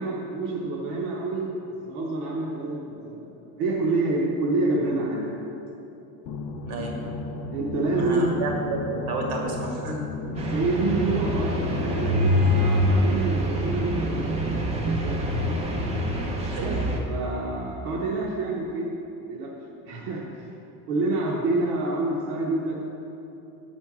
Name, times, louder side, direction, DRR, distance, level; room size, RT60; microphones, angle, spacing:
voice 1, 0.0-1.5 1.9-3.3 3.6-5.3 7.5-8.4 10.5-14.3 14.8-15.2 16.6-16.7 17.0-18.9 19.3-19.5 19.9-20.5 20.9-22.7, right 2 dB, 60° right, -3 dB, 0.9 m, -27 dB
sound 1, 6.3-12.7, left 3 dB, 55° left, 0.6 m, -34 dB
voice 2, 6.6-6.9 7.9-10.0 10.4-10.5 16.5-16.7, right 3 dB, 85° right, -1 dB, 1.8 m, -31 dB
sound 2, 10.4-17.0, equal, 15° right, 0.4 m, -25 dB
7.5 x 4.4 x 6.0 m, 3.0 s
cardioid pair, 175°, 42 cm